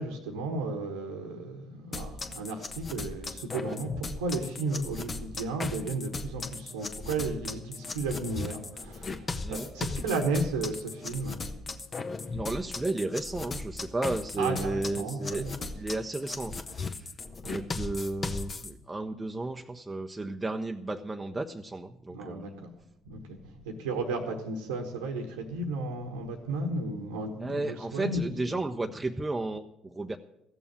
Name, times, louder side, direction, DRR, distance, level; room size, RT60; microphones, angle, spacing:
voice 1, 0.0-11.6 14.4-15.5 17.4-17.6 22.1-22.7 23.0-23.4 23.6-28.6, right 2 dB, 85° right, 3 dB, 1.3 m, -34 dB
sound 1, 1.9-18.7, left 3 dB, 35° left, 1.1 m, -37 dB
voice 2, 12.3-15.4 15.7-17.1 17.5-22.5 27.4-30.2, right 2 dB, 15° right, 3 dB, 0.8 m, -33 dB
15.0 x 7.1 x 8.5 m, 0.82 s
hypercardioid pair, 55°, 0 cm